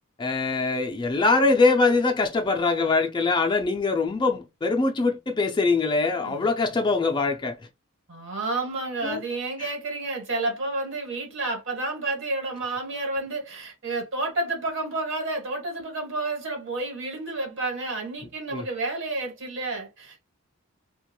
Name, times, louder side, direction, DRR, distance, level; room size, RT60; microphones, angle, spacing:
voice 1, 0.2-7.6 9.0-9.2 9.6-9.7 18.5-18.7, left 3 dB, 20° left, 0.3 m, -23 dB
voice 2, 8.1-20.2, right 2 dB, 60° right, 1.2 m, -30 dB
2.4 x 2.2 x 2.9 m
head